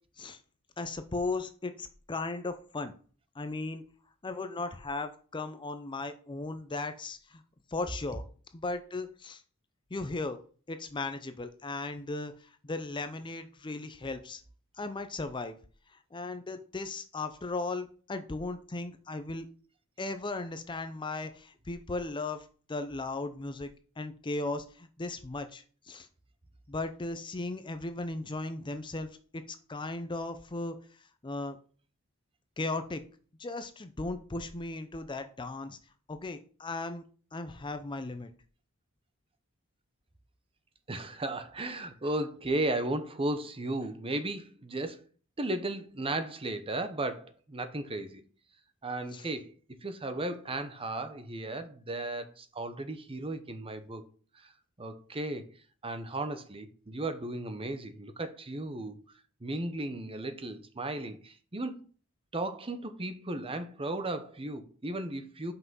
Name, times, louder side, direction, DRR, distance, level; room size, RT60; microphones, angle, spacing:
voice 1, 0.8-2.9 3.4-3.8 4.2-7.4 7.7-8.2 8.5-9.4 9.9-10.4 10.7-14.4 14.8-15.6 15.9-19.4 20.0-23.7 24.0-26.1 26.7-31.6 32.6-33.0 33.4-35.8 36.1-37.0 37.3-38.3 49.1-49.3, left 3 dB, 20° left, 0.5 m, -37 dB
voice 2, 40.9-45.0 45.4-48.2 48.8-49.5 49.8-54.0 54.3-54.5 54.8-55.5 55.8-59.0 59.4-61.8 62.3-65.5, right 2 dB, 25° right, 0.8 m, -35 dB
5.9 x 5.7 x 5.4 m
head